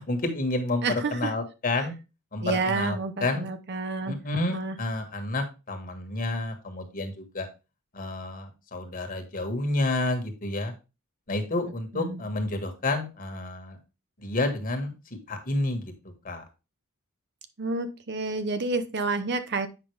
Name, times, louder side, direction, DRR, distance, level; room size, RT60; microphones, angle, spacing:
voice 1, 0.0-1.9 2.3-3.5 4.1-7.5 7.9-10.7 11.3-13.8 14.2-15.0 15.3-15.9 16.2-16.4, left 2 dB, 40° left, 5 dB, 1.6 m, -30 dB
voice 2, 0.8-1.1 2.4-4.2 4.5-4.8 11.9-12.2 17.6-19.7, right 3 dB, 50° right, 10 dB, 0.8 m, -29 dB
8.3 x 5.6 x 3.3 m, 0.28 s
head